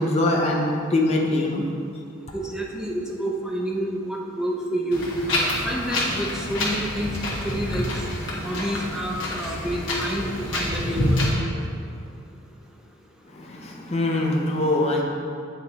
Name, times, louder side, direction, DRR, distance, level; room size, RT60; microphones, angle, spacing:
voice 1, 0.0-1.6 13.3-15.0, left 1 dB, 30° left, -1 dB, 0.7 m, -23 dB
voice 2, 2.3-5.0 5.6-7.2 7.4-7.9 8.4-11.2, right 1 dB, 5° right, -2 dB, 0.6 m, -28 dB
Wind, 4.9-11.3, left 1 dB, 60° left, 1.3 m, -27 dB
9.0 x 3.2 x 4.1 m, 2.4 s
head